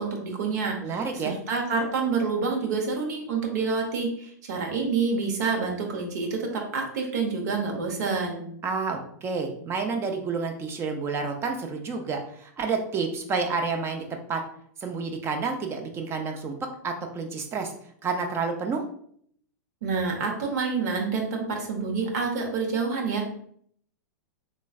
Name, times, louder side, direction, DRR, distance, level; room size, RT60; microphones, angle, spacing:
voice 1, 0.0-6.5 6.7-8.4 19.8-23.2, right 4 dB, 70° right, 1 dB, 1.0 m, -28 dB
voice 2, 0.8-1.3 8.6-14.4 14.8-16.5 16.8-17.7 18.0-18.8, right 4 dB, 25° right, 4 dB, 0.6 m, -29 dB
3.2 x 3.1 x 2.3 m, 0.64 s
hypercardioid pair, 115°, 10 cm